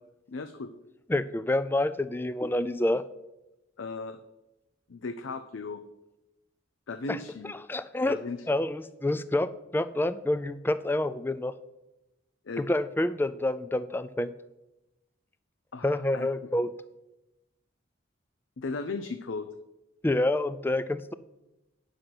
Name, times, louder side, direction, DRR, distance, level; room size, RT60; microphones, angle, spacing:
voice 1, 0.3-0.7 3.8-4.2 4.9-5.8 6.9-7.5 8.1-8.5 12.5-12.7 15.7-16.3 18.6-19.5, left 3 dB, 75° left, 10 dB, 0.5 m, -36 dB
voice 2, 1.1-3.0 7.1-7.2 7.5-8.2 8.5-11.5 12.6-14.3 15.8-16.7 20.0-21.1, left 1 dB, 10° left, 14 dB, 0.3 m, -28 dB
9.7 x 6.5 x 6.0 m, 0.95 s
head